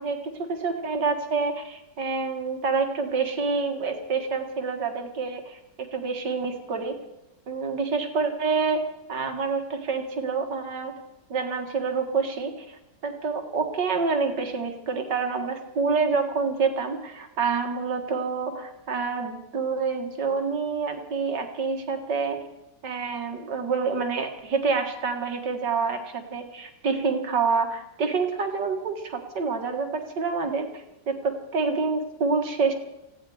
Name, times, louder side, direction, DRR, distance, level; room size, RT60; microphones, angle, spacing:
voice 1, 0.0-7.0 7.5-10.9 11.3-12.8 13.0-22.4 22.8-32.7, right 4 dB, 70° right, 5 dB, 2.2 m, -27 dB
19.0 x 15.5 x 4.8 m, 0.91 s
omnidirectional pair, 2.0 m